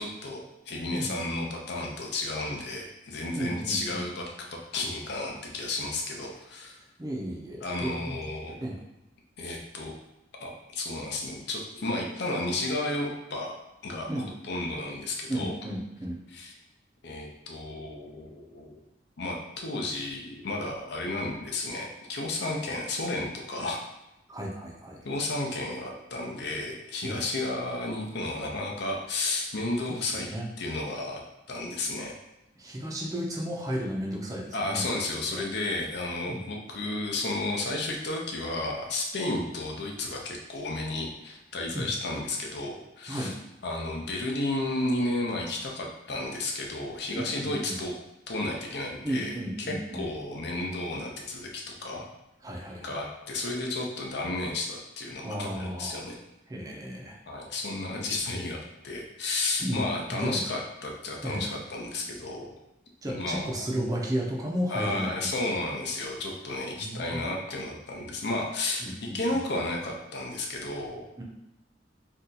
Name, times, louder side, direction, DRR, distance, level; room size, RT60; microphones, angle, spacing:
voice 1, 0.0-6.8 7.6-8.6 9.4-10.0 10.4-13.6 13.8-14.1 14.4-15.5 16.3-16.5 17.0-18.8 19.2-23.8 25.0-30.3 30.6-31.2 31.5-32.1 34.5-43.3 43.6-47.9 48.3-49.3 49.6-52.1 52.8-56.2 57.3-62.5 63.1-63.7 64.7-71.0, left 2 dB, 65° left, 0 dB, 0.6 m, -32 dB
voice 2, 3.4-4.0 7.0-8.1 8.6-8.8 14.1-14.3 15.3-16.2 24.3-25.0 27.0-27.2 29.9-30.5 32.6-34.9 35.3-35.4 36.3-36.5 41.7-41.9 43.1-43.3 47.1-47.8 49.0-50.1 52.4-53.0 55.2-56.1 56.5-57.2 59.6-59.9 60.1-60.4 61.2-61.5 63.0-65.3 66.8-67.3 68.8-69.4 71.2-71.3, equal, 20° right, -1 dB, 0.5 m, -33 dB
2.7 x 2.3 x 3.9 m, 0.93 s
head